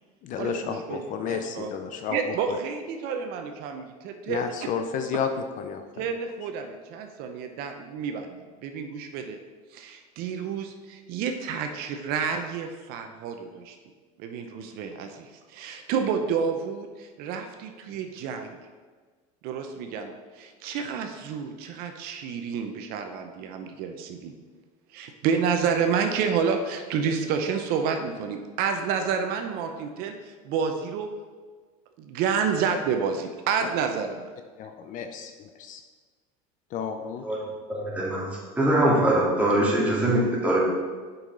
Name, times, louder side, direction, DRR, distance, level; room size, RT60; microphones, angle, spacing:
voice 1, 0.2-2.6 4.3-6.1 34.6-35.8 36.7-37.3, left 7 dB, 50° left, 7 dB, 0.6 m, -32 dB
voice 2, 0.9-1.7 2.1-4.7 6.0-8.3 8.6-9.4 9.7-13.8 14.2-18.6 19.4-24.3 24.9-31.1 32.0-34.3, right 6 dB, 60° right, 5 dB, 0.7 m, -29 dB
voice 3, 37.7-38.3 38.5-40.6, right 1 dB, 10° right, -5 dB, 2.2 m, -22 dB
7.0 x 5.5 x 3.9 m, 1.5 s
supercardioid pair, 115°, 17 cm